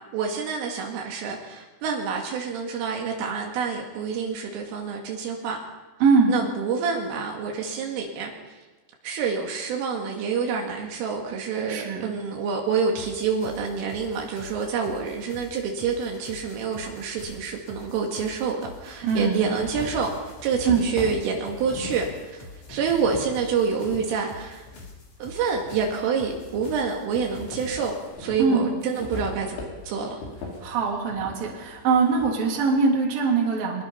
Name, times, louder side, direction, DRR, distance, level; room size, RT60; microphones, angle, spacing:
voice 1, 0.0-5.6 6.3-8.3 9.0-24.7 25.2-30.2, right 5 dB, 80° right, 1 dB, 4.6 m, -27 dB
voice 2, 6.0-6.3 11.7-12.1 19.0-19.4 20.7-20.8 28.4-28.7 30.6-33.8, right 4 dB, 50° right, -1 dB, 4.5 m, -22 dB
sound 1, 13.0-28.1, left 2 dB, 35° left, 4.2 m, -46 dB
sound 2, 17.2-17.3 18.4-18.5 18.9-24.1 24.6-25.8 26.2-32.4, left 3 dB, 75° left, 6.8 m, -40 dB
23.0 x 22.0 x 5.7 m, 1.2 s
omnidirectional pair, 5.8 m